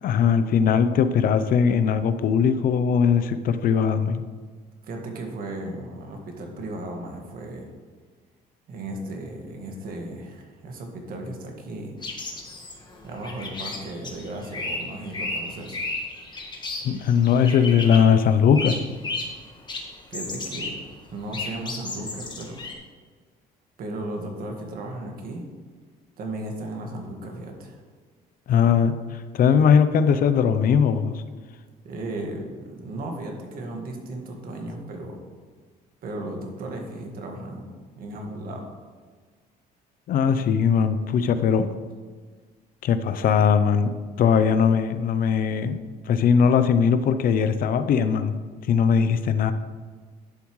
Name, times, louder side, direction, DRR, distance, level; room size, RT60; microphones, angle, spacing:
voice 1, 0.0-4.2 16.8-18.8 28.5-31.2 40.1-41.7 42.8-43.9 44.2-48.4 48.7-49.5, left 7 dB, 55° left, 11 dB, 0.6 m, -20 dB
voice 2, 4.8-7.7 8.7-11.9 13.0-15.9 20.1-20.8 21.1-22.6 23.8-25.4 26.2-27.8 31.8-35.2 36.0-37.6 38.0-38.7, right 1 dB, 60° right, 2 dB, 1.7 m, -35 dB
sound 1, 12.0-18.2 18.5-19.4 19.7-20.8 21.1-22.7, left 2 dB, 25° left, 1.4 m, -33 dB
11.0 x 7.2 x 3.2 m, 1.5 s
cardioid pair, 110°, 17 cm